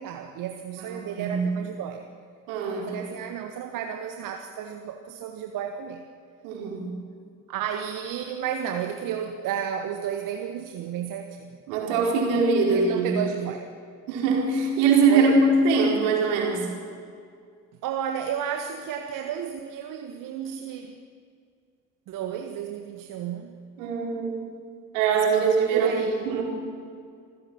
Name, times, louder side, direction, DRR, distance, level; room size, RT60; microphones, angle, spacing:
voice 1, 0.0-2.0 2.8-6.0 7.5-11.5 12.6-13.7 15.1-15.4 17.8-21.0 22.1-23.6 25.7-26.3, right 8 dB, 50° right, 6 dB, 1.5 m, -32 dB
voice 2, 0.8-1.5 2.5-3.0 6.4-6.9 11.7-13.1 14.1-16.7 23.8-24.4 24.9-25.9 26.2-26.4, right 4 dB, 65° right, 0 dB, 4.7 m, -22 dB
27.0 x 15.5 x 7.3 m, 2.2 s
figure-of-eight pair, 55°, 42 cm